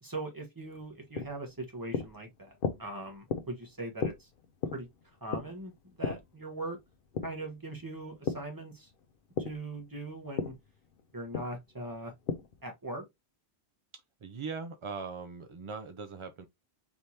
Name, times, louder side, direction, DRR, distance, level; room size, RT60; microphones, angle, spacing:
voice 1, 0.0-2.5 2.8-4.3 4.7-4.9 5.2-6.8 7.2-8.9 9.4-10.5 11.1-12.1 12.6-13.1, right 2 dB, 20° right, 1.1 m, -40 dB
sound 1, 0.6-8.5 8.9-12.7, left 5 dB, 60° left, 0.8 m, -37 dB
voice 2, 14.2-16.5, right 5 dB, 55° right, 0.3 m, -40 dB
4.4 x 3.3 x 2.7 m
omnidirectional pair, 1.1 m